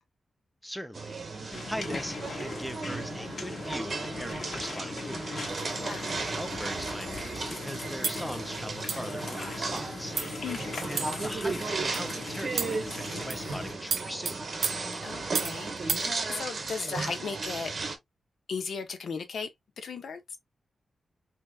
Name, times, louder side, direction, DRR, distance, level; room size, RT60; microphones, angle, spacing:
voice 1, 0.6-5.9 6.2-10.2 10.9-14.4, equal, ahead, 0.4 m, -40 dB
sound 1, 0.9-18.0, right 3 dB, 45° right, 0.8 m, -35 dB
sound 2, 1.5-13.7, left 3 dB, 55° left, 0.9 m, -40 dB
voice 2, 5.8-6.2 10.4-11.3 15.0-17.7 18.5-19.5 19.8-20.2, left 5 dB, 75° left, 0.7 m, -37 dB
sound 3, 8.0-8.3 8.9-9.1 9.8-9.9 10.2-10.4 11.0-11.3 11.9-12.1 12.6-12.9 13.3-13.5 13.9-15.6 15.9-16.1, right 5 dB, 65° right, 0.4 m, -32 dB
3.4 x 2.8 x 2.3 m
wide cardioid pair, 130°, 0 cm